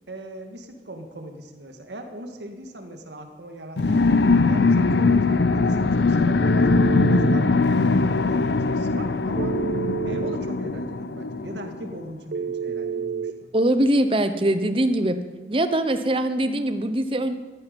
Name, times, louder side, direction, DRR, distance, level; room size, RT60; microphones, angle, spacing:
voice 1, 0.1-4.2 4.5-9.6 10.1-13.5, right 1 dB, 85° right, 5 dB, 1.9 m, -39 dB
sound 1, 3.8-11.9, left 3 dB, 85° left, 0.6 m, -21 dB
Telephone, 6.4-7.4 9.4-10.4 12.3-13.3, right 6 dB, 60° right, 0.6 m, -29 dB
voice 2, 13.5-15.2 15.5-17.3, right 1 dB, 30° right, 9 dB, 0.9 m, -22 dB
15.0 x 13.5 x 5.4 m, 1.3 s
head